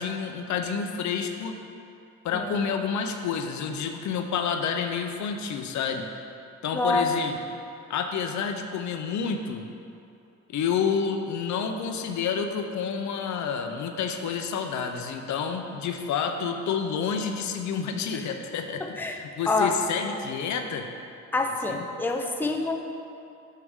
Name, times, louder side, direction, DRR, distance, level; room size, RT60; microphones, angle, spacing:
voice 1, 0.0-1.6 2.2-6.1 6.6-7.3 7.9-9.7 10.5-20.9 21.7-21.8, left 6 dB, 70° left, 5 dB, 0.7 m, -29 dB
voice 2, 6.7-7.0 18.9-19.2 19.5-19.7 21.3-22.8, left 3 dB, 5° left, 2 dB, 0.6 m, -26 dB
7.8 x 6.7 x 3.6 m, 2.6 s
cardioid pair, 90°, 30 cm